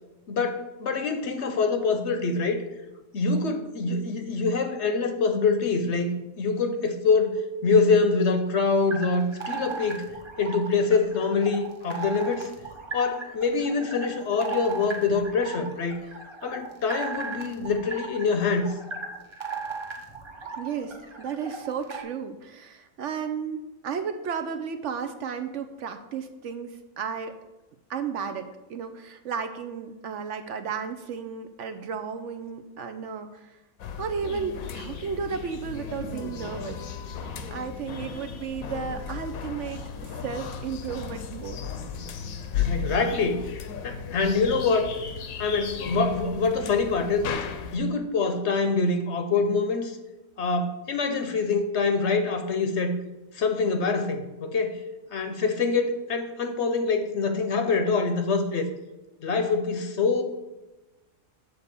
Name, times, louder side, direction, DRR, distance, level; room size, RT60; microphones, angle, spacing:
voice 1, 0.3-2.6 3.1-7.4 7.6-10.0 10.4-12.5 12.9-16.0 16.4-18.8 42.5-43.4 43.8-44.9 45.4-47.3 47.7-50.0 50.4-53.0 53.3-54.8 55.1-58.7 59.2-60.2, left 4 dB, 60° left, 7 dB, 0.9 m, -25 dB
sound 1, 8.9-22.0, right 4 dB, 25° right, 0.9 m, -37 dB
voice 2, 20.6-27.3 27.9-33.6 34.0-36.8 37.5-41.6, right 6 dB, 65° right, 7 dB, 0.9 m, -33 dB
sound 2, 33.8-47.8, left 6 dB, 75° left, 1.2 m, -35 dB
8.2 x 4.0 x 6.9 m, 1.1 s
omnidirectional pair, 1.5 m